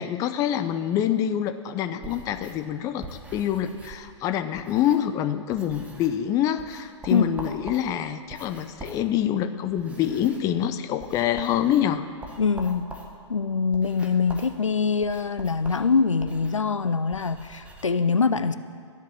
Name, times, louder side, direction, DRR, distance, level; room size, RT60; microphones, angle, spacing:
voice 1, 0.0-3.1 3.3-12.0, left 10 dB, 20° left, 10 dB, 0.5 m, -26 dB
sound 1, 2.0-5.2 5.5-6.3 6.6-17.8, right 2 dB, 10° right, 1.2 m, -44 dB
voice 2, 12.4-12.9 13.3-18.6, left 5 dB, 80° left, 12 dB, 0.6 m, -24 dB
12.5 x 8.1 x 7.6 m, 2.1 s
figure-of-eight pair, 115°, 16 cm